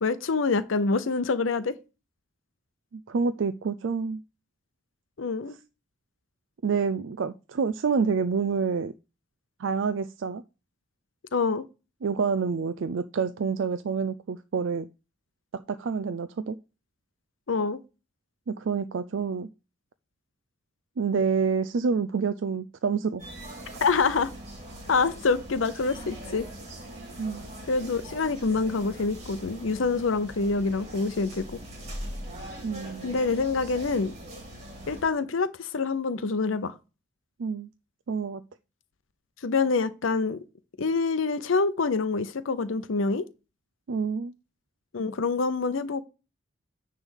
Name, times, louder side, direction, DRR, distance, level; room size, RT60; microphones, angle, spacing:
voice 1, 0.0-1.8 5.2-5.5 11.3-11.6 17.5-17.8 23.8-24.3 24.9-26.5 27.7-31.5 33.0-34.1 34.9-36.7 39.4-40.4 40.8-43.2 44.9-46.0, left 4 dB, 90° left, 0.7 m, -26 dB
voice 2, 2.9-4.2 6.6-8.9 9.6-10.4 12.0-14.9 15.5-16.6 18.5-19.5 21.0-23.2 27.2-27.4 32.6-33.2 37.4-37.7 38.1-38.4 43.9-44.3, right 5 dB, 75° right, 0.4 m, -28 dB
sound 1, 23.2-35.0, equal, 35° right, 2.5 m, -41 dB
9.7 x 3.3 x 6.4 m
head